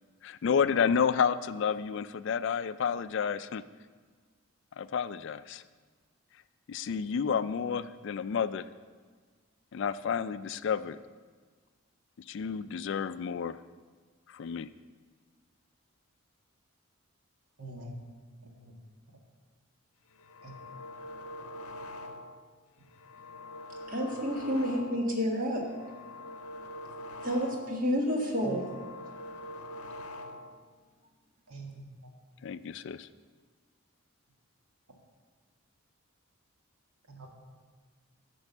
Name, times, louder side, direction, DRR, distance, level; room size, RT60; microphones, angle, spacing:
voice 1, 0.2-3.6 4.8-5.6 6.7-8.7 9.7-11.0 12.3-13.6 14.3-14.7 32.4-33.1, left 7 dB, 55° left, 14 dB, 0.3 m, -30 dB
voice 2, 17.6-18.0 18.6-18.7 20.4-20.6 28.4-28.6 31.5-31.9 37.2-37.3, right 2 dB, 90° right, 0 dB, 1.9 m, -43 dB
sound 1, 20.1-22.5 22.9-25.2 25.6-27.9 28.3-30.7, left 1 dB, 90° left, 0.7 m, -44 dB
voice 3, 23.9-25.6 27.2-28.7, equal, 40° right, 0 dB, 1.6 m, -29 dB
10.5 x 5.4 x 7.1 m, 1.5 s
head